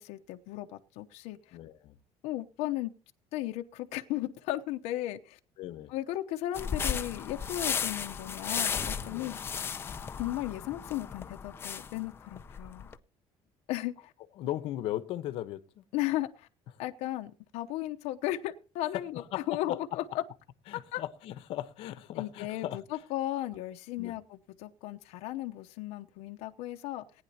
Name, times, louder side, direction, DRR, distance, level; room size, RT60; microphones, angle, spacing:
voice 1, 0.0-1.6 2.2-2.9 3.3-5.4 5.9-9.4 10.2-12.9 13.7-14.1 15.9-16.5 16.8-19.2 19.5-20.2 20.7-21.0 22.1-27.0, left 15 dB, 85° left, 0.9 m, -35 dB
voice 2, 1.5-1.9 5.6-5.9 9.0-9.3 12.8-12.9 14.4-15.8 18.9-19.8 20.7-22.8 24.0-24.1, left 13 dB, 60° left, 1.0 m, -37 dB
sound 1, 6.5-12.9, left 6 dB, 20° left, 0.6 m, -35 dB
19.0 x 9.8 x 2.9 m
cardioid pair, 175°, 11 cm